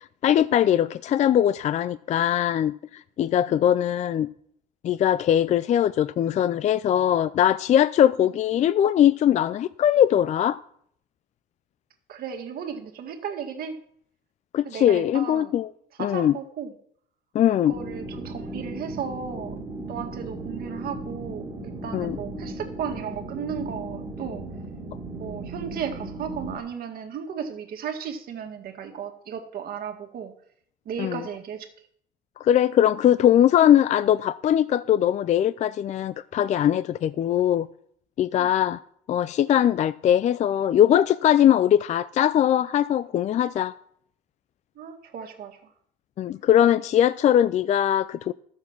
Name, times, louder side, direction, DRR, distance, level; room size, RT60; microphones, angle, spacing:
voice 1, 0.2-2.7 3.2-4.3 4.8-10.6 14.5-15.7 16.0-16.4 17.3-17.7 21.9-22.2 31.0-31.2 32.4-37.7 38.2-38.8 39.1-43.7 46.2-48.3, left 10 dB, 45° left, 0.4 m, -21 dB
voice 2, 12.1-13.8 14.6-15.5 16.0-16.7 17.7-19.6 19.9-24.4 25.2-30.3 30.9-31.7 38.4-38.5 44.8-45.7, right 7 dB, 60° right, 1.9 m, -35 dB
sound 1, 17.7-26.6, right 2 dB, 20° right, 1.7 m, -36 dB
12.5 x 7.2 x 6.0 m
cardioid pair, 110°, 17 cm